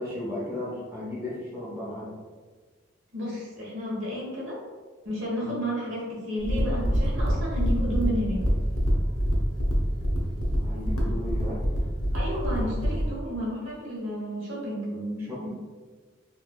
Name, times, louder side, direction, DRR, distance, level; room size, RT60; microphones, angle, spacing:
voice 1, 0.0-2.1 5.4-5.5 10.6-11.6 15.2-15.5, left 1 dB, 10° right, -8 dB, 0.6 m, -35 dB
voice 2, 3.1-4.6 5.0-8.4 12.1-15.5, equal, 65° right, -5 dB, 1.0 m, -32 dB
sound 1, 6.4-13.1, equal, 90° left, 0.6 m, -25 dB
3.1 x 2.3 x 2.2 m, 1.5 s
head